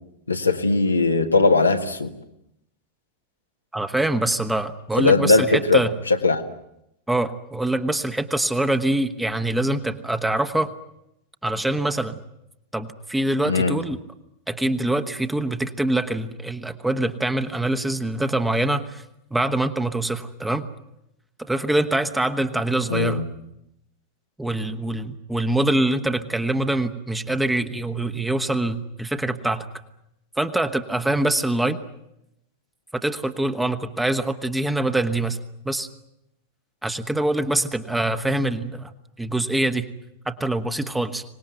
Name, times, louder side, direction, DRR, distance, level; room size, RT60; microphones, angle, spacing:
voice 1, 0.3-2.1 5.0-6.4 13.5-13.8 22.9-23.2, left 3 dB, 80° left, 4 dB, 1.7 m, -19 dB
voice 2, 3.7-5.9 7.1-10.7 11.4-12.2 12.7-14.0 14.5-19.0 19.3-20.7 21.4-23.2 24.4-29.7 30.4-31.8 32.9-35.4 35.6-35.9 36.8-38.9 39.2-39.8 40.2-41.2, right 1 dB, 5° right, 9 dB, 1.4 m, -24 dB
25.0 x 19.5 x 9.1 m, 0.82 s
figure-of-eight pair, 90°, 0 cm